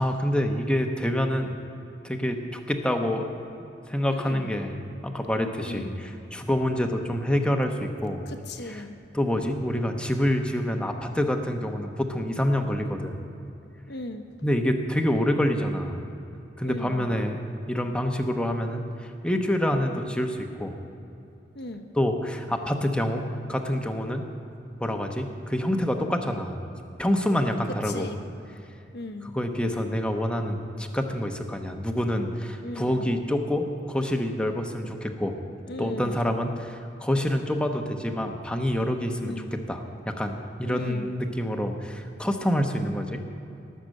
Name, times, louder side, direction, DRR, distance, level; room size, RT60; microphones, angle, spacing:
voice 1, 0.0-1.6 2.0-3.4 3.9-8.2 8.7-8.8 9.1-13.2 14.4-16.0 16.6-17.4 17.7-20.7 21.9-24.3 24.8-26.6 27.0-28.1 29.2-35.4 35.8-43.2, equal, 5° left, 4 dB, 1.0 m, -27 dB
voice 2, 4.1-4.5 5.6-6.0 8.3-9.0 13.9-14.3 16.6-17.2 21.5-21.9 27.8-28.2 28.9-29.3 32.6-33.1 35.7-36.2 39.2-39.5 40.6-41.1, left 2 dB, 60° left, 6 dB, 1.1 m, -37 dB
18.5 x 6.8 x 7.7 m, 2.8 s
head